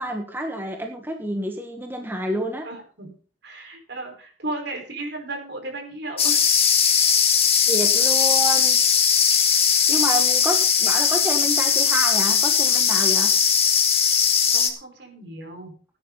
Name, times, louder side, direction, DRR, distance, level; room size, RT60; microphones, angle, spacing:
voice 1, 0.0-2.6 7.7-8.8 9.9-13.3, right 1 dB, 10° right, 3 dB, 1.6 m, -28 dB
voice 2, 2.6-3.1 3.4-6.4 14.5-15.7, right 2 dB, 65° right, 2 dB, 5.0 m, -34 dB
sound 1, 6.2-14.7, left 7 dB, 35° left, 1.9 m, -19 dB
17.0 x 10.5 x 4.1 m, 0.39 s
head